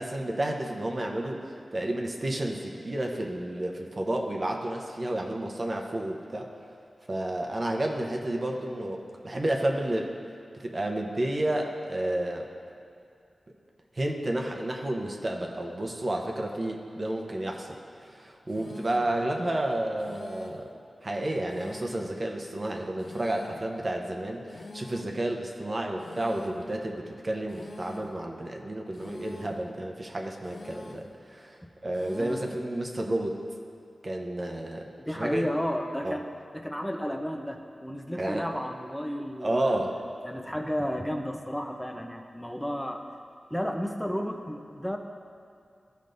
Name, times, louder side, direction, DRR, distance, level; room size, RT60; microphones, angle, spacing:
voice 1, 0.0-6.5 7.1-10.1 10.5-12.5 14.0-20.7 21.0-33.4 34.0-34.8 35.1-35.4 36.0-36.2 38.2-38.4 39.4-40.0 40.3-40.4, right 1 dB, 40° right, 1 dB, 0.8 m, -31 dB
sound 1, 18.5-19.2 20.0-20.7 21.5-22.2 23.0-23.7 24.5-25.2 26.0-26.7 27.5-28.2 28.9-29.6 30.4-31.1 31.9-32.6, left 3 dB, 65° left, 0.5 m, -45 dB
voice 2, 35.0-39.8 40.2-43.0 43.5-45.0, equal, 5° left, 3 dB, 0.7 m, -33 dB
13.5 x 5.3 x 2.6 m, 2.4 s
cardioid pair, 55°, 0 cm